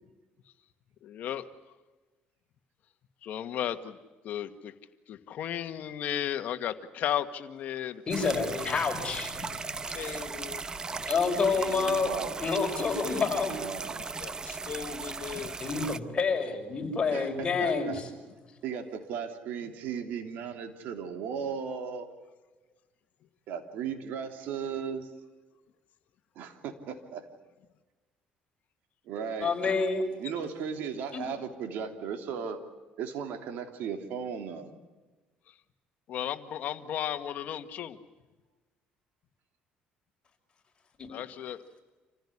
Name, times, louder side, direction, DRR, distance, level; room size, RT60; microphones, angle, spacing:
voice 1, 1.0-1.4 3.2-4.0 4.2-4.7 5.1-8.8 9.3-9.6 9.9-10.6 10.9-11.0 12.5-13.3 14.0-15.6 29.6-29.8 30.4-30.5 36.1-38.0 41.1-41.6, left 10 dB, 60° left, 9 dB, 1.7 m, -35 dB
voice 2, 8.1-9.3 11.1-12.1 12.4-13.6 15.6-18.1 29.4-30.1 31.1-31.3 41.0-41.1, left 4 dB, 30° left, 2 dB, 5.9 m, -28 dB
sound 1, 8.1-16.0, right 4 dB, 25° right, 0.9 m, -37 dB
voice 3, 11.6-12.5 13.5-14.1 17.1-18.0 18.6-22.1 23.5-25.1 26.3-27.2 29.1-29.6 30.2-32.6 33.0-34.7, right 7 dB, 75° right, 6 dB, 3.1 m, -36 dB
27.5 x 16.0 x 10.0 m, 1.2 s
cardioid pair, 115°, 3 cm